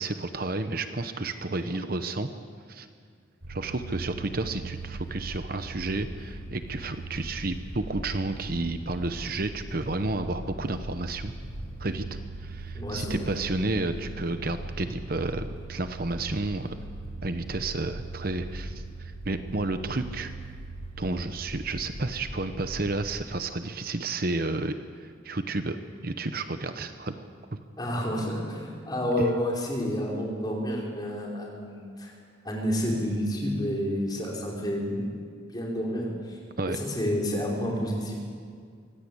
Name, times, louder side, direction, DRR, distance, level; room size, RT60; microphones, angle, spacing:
voice 1, 0.0-2.3 2.7-2.9 3.5-11.3 11.8-16.8 17.2-20.3 21.0-25.8 26.0-27.2 29.2-29.3 36.6-36.8, right 2 dB, 50° right, 9 dB, 0.9 m, -31 dB
sound 1, 3.4-23.2, right 2 dB, 80° right, 4.4 m, -40 dB
voice 2, 12.7-13.3 27.8-32.1 32.4-35.0 35.4-36.4 36.6-38.1, equal, 20° left, -2 dB, 4.7 m, -29 dB
24.0 x 17.0 x 8.5 m, 2.1 s
head